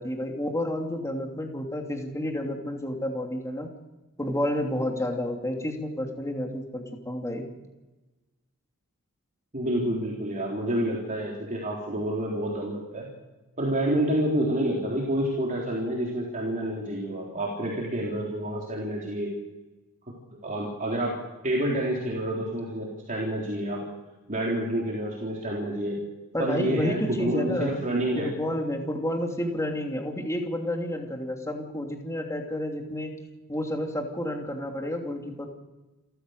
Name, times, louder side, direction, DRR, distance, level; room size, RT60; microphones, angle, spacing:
voice 1, 0.0-3.7 4.2-7.5 26.3-27.8 28.2-33.1 33.5-35.5, left 1 dB, 15° left, 2 dB, 2.8 m, -30 dB
voice 2, 9.5-13.1 13.6-19.3 20.3-21.2 21.4-23.8 24.3-26.0 26.4-28.3, right 1 dB, 35° right, -3 dB, 3.9 m, -28 dB
28.5 x 14.5 x 6.6 m, 1.1 s
head